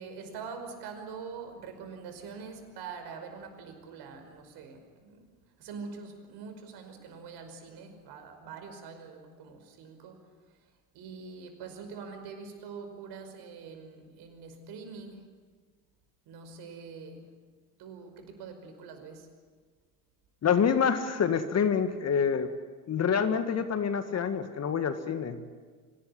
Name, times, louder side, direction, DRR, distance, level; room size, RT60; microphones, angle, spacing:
voice 1, 0.0-5.2 5.6-10.2 10.9-15.3 16.3-17.3 17.8-19.3, right 5 dB, 55° right, 6 dB, 5.4 m, -44 dB
voice 2, 20.4-22.5 22.9-25.4, left 7 dB, 30° left, 10 dB, 1.8 m, -27 dB
25.5 x 18.5 x 9.9 m, 1.5 s
hypercardioid pair, 75°, 47 cm